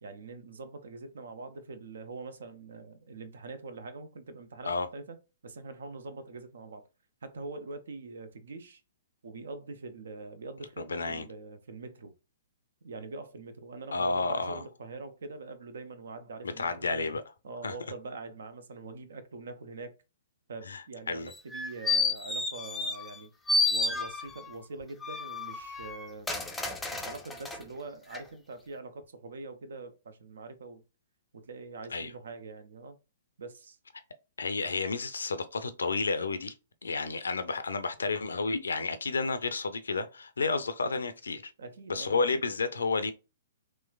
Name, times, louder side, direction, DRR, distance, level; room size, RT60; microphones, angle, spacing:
voice 1, 0.0-6.9 7.2-8.8 9.2-12.1 12.8-17.1 17.4-19.9 20.5-23.3 23.7-26.3 26.9-30.8 31.3-33.0 33.4-33.8 41.6-42.2, right 3 dB, 60° right, 0.6 m, -44 dB
voice 2, 10.8-11.2 13.9-14.6 16.4-17.2 17.6-17.7 20.7-21.3 31.9-32.1 34.4-36.5 36.8-41.4 41.9-43.1, left 4 dB, 65° left, 0.5 m, -31 dB
sound 1, 21.3-23.2 23.5-24.5 25.0-27.6 28.1-28.2, left 3 dB, 5° left, 0.5 m, -31 dB
3.2 x 3.1 x 2.3 m
figure-of-eight pair, 115°, 0 cm